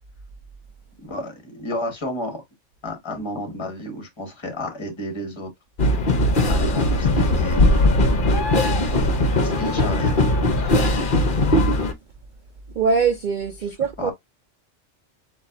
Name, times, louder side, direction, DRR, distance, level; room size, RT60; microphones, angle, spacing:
voice 1, 1.0-2.4 2.8-5.5 6.4-8.0 9.4-10.5 14.0-14.1, left 1 dB, 20° left, 1.1 m, -32 dB
sound 1, 5.8-11.9, left 1 dB, 45° left, 0.8 m, -19 dB
voice 2, 12.7-14.1, right 5 dB, 80° right, 0.4 m, -22 dB
7.1 x 2.5 x 2.5 m
omnidirectional pair, 1.4 m